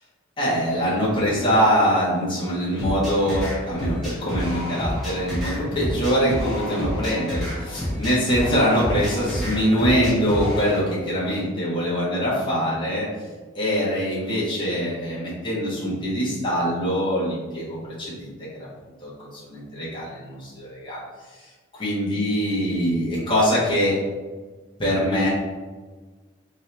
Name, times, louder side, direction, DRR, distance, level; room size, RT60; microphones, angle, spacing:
voice 1, 0.4-13.1 13.5-18.3 18.6-18.7 19.0-21.0 21.7-24.0 24.8-25.3, equal, 25° left, -8 dB, 1.1 m, -23 dB
sound 1, 2.8-10.8, equal, ahead, 1.2 m, -29 dB
3.6 x 2.9 x 3.2 m, 1.3 s
head